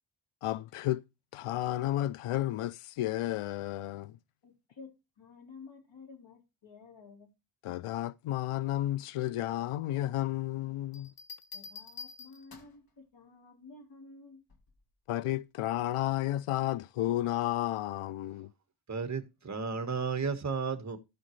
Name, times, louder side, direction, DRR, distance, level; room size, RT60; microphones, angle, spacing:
voice 1, 0.4-1.0 1.3-4.2 7.6-11.1 15.1-18.5, left 14 dB, 85° left, 0.5 m, -32 dB
voice 2, 4.4-4.9 5.2-7.3 11.5-14.4, left 4 dB, 65° left, 3.5 m, -52 dB
sound 1, 10.9-12.9 14.5-14.8, left 5 dB, 45° left, 1.5 m, -47 dB
voice 3, 18.9-21.0, right 5 dB, 35° right, 1.5 m, -33 dB
15.0 x 5.2 x 3.2 m
wide cardioid pair, 120°, 50 cm